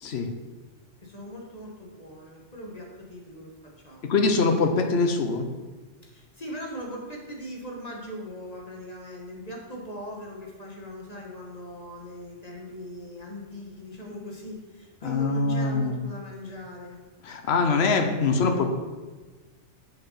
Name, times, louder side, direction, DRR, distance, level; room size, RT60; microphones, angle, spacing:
voice 1, 1.0-3.5 3.8-4.1 6.0-17.0, equal, 35° left, -2 dB, 1.7 m, -40 dB
voice 2, 4.0-5.5 15.0-16.0 17.2-18.7, left 4 dB, 60° left, 5 dB, 1.1 m, -23 dB
7.2 x 5.9 x 5.7 m, 1.3 s
omnidirectional pair, 1.2 m